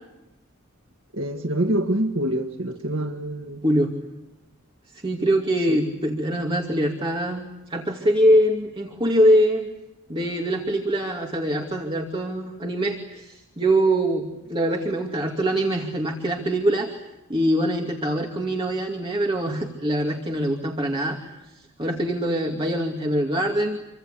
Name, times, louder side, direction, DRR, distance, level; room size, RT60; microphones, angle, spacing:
voice 1, 1.1-3.6 5.7-5.8, right 1 dB, 75° right, 3 dB, 1.8 m, -26 dB
voice 2, 4.9-9.6 10.1-17.0 17.3-21.5 21.8-23.8, right 1 dB, 25° right, 1 dB, 2.5 m, -23 dB
28.0 x 25.0 x 8.5 m, 0.96 s
head